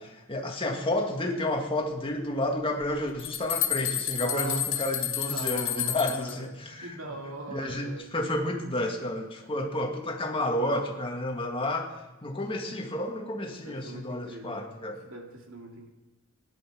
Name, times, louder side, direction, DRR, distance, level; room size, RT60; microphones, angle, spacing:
voice 1, 0.0-7.1 7.5-11.9 12.2-15.0, left 1 dB, 25° left, 2 dB, 1.8 m, -31 dB
sound 1, 2.8-6.3, left 11 dB, 75° left, 2.1 m, -30 dB
voice 2, 4.2-4.7 5.3-6.5 6.8-8.1 13.6-14.6 15.0-15.9, right 2 dB, 75° right, 1 dB, 2.5 m, -41 dB
17.0 x 11.0 x 6.1 m, 1.0 s
head